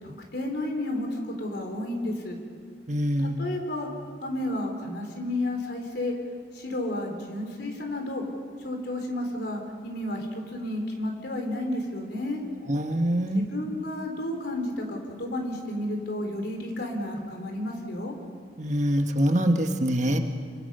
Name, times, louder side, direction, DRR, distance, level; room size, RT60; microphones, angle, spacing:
voice 1, 0.0-2.4 3.2-3.9 4.2-6.2 6.5-8.2 8.6-12.4 13.3-18.1, left 1 dB, 60° left, 2 dB, 3.9 m, -32 dB
voice 2, 2.9-3.4 12.7-13.4 18.6-20.2, equal, 40° right, 5 dB, 1.5 m, -24 dB
26.0 x 25.0 x 5.6 m, 2.1 s
head